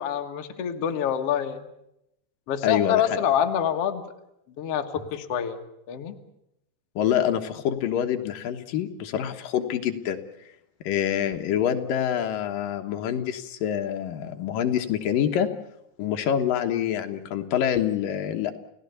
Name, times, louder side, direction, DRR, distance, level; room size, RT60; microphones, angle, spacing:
voice 1, 0.0-1.7 2.5-4.0 4.6-5.6 5.9-6.1, left 9 dB, 85° left, 4 dB, 1.3 m, -26 dB
voice 2, 2.6-3.0 7.0-10.2 10.8-15.5 16.0-18.5, left 9 dB, 65° left, 5 dB, 2.4 m, -26 dB
30.0 x 17.0 x 6.9 m, 0.82 s
omnidirectional pair, 5.3 m